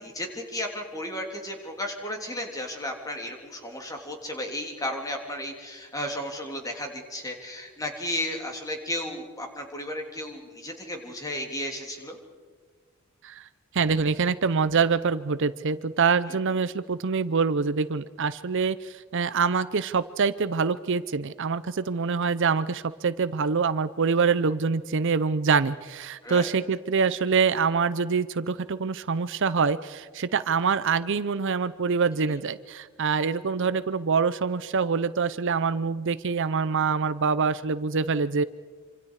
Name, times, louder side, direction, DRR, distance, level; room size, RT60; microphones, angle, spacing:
voice 1, 0.0-12.2 26.2-26.5 32.3-32.4, left 1 dB, 15° left, 2 dB, 3.2 m, -34 dB
voice 2, 13.7-38.4, right 5 dB, 55° right, 15 dB, 0.6 m, -25 dB
27.0 x 26.0 x 4.8 m, 1.5 s
head